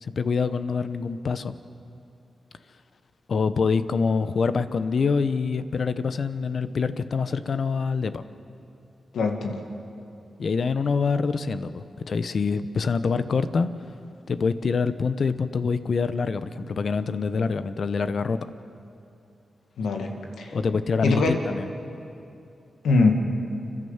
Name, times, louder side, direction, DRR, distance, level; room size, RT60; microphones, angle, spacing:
voice 1, 0.0-1.5 3.3-8.2 10.4-13.7 14.3-18.4 20.5-21.7, left 5 dB, 65° left, 12 dB, 0.9 m, -25 dB
voice 2, 9.1-9.6 19.8-20.1 20.4-20.5 21.0-21.4 22.8-23.1, left 3 dB, 85° left, 3 dB, 1.9 m, -22 dB
29.5 x 11.0 x 8.0 m, 2.7 s
cardioid pair, 45°, 0 cm